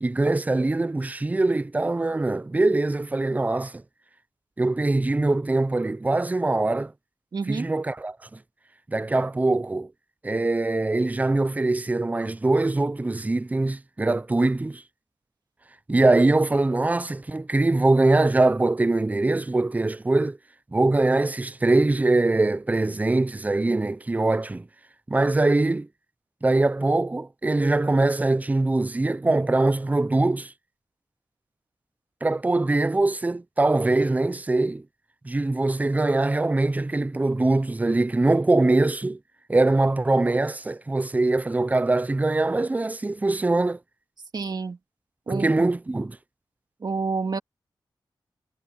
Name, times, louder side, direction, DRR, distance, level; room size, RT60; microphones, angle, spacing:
voice 1, 0.0-3.8 4.6-6.9 7.5-8.4 8.9-9.9 10.2-14.8 15.9-20.4 20.7-24.7 25.1-25.9 26.4-30.5 32.2-34.8 35.2-39.2 39.5-43.8 45.3-46.2, right 2 dB, 20° right, 0.5 m, -22 dB
voice 2, 7.3-7.7 44.3-44.8 45.3-45.7 46.8-47.4, right 4 dB, 55° right, 2.2 m, -29 dB
wide cardioid pair, 100°, 8 cm